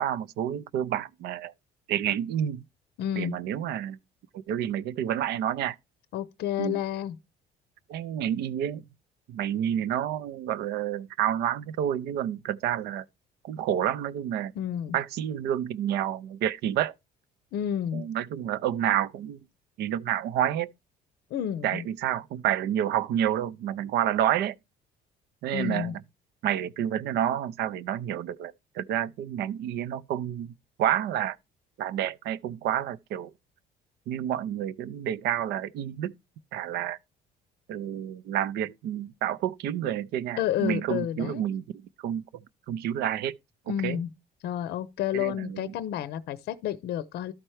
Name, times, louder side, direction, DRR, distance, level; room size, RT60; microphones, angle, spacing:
voice 1, 0.0-1.5 1.9-2.6 3.2-4.0 4.5-5.8 6.6-6.8 7.9-8.9 9.3-13.1 13.4-14.5 14.9-17.0 17.9-19.4 19.8-20.7 21.6-24.6 25.4-26.0 26.4-31.4 31.8-33.3 34.1-36.1 36.5-37.0 37.7-43.3 43.7-44.0 45.1-45.7, right 10 dB, 75° right, 0.6 m, -29 dB
voice 2, 3.0-3.4 6.1-7.1 14.6-15.0 17.5-18.1 21.3-21.8 25.5-25.9 40.4-41.4 43.7-44.1 44.4-47.3, left 10 dB, 70° left, 0.6 m, -30 dB
12.5 x 4.4 x 3.2 m
cardioid pair, 110°, 17 cm